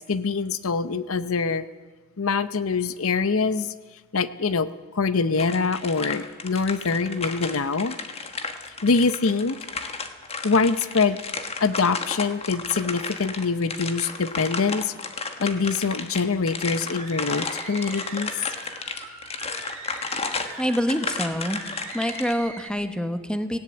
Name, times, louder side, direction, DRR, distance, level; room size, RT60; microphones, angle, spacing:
voice 1, 0.1-1.7 2.2-3.7 4.1-7.9 8.8-9.6 10.4-11.2 11.6-14.9 15.4-18.3, left 4 dB, 70° left, 14 dB, 0.7 m, -24 dB
sound 1, 5.4-22.3, left 4 dB, 25° left, 1.4 m, -33 dB
sound 2, 17.0-22.7, right 4 dB, 35° right, 3.9 m, -41 dB
voice 2, 20.6-21.6 21.9-23.6, equal, 5° left, 8 dB, 1.1 m, -26 dB
18.0 x 17.5 x 8.8 m, 1.3 s
head